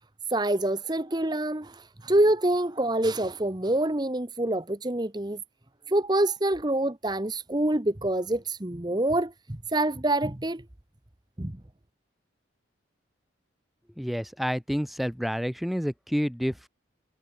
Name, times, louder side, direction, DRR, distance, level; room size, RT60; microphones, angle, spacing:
voice 1, 0.3-5.4 5.9-10.6 11.4-11.5, right 1 dB, 20° right, 1.0 m, -26 dB
voice 2, 14.0-16.7, equal, ahead, 3.5 m, -29 dB
head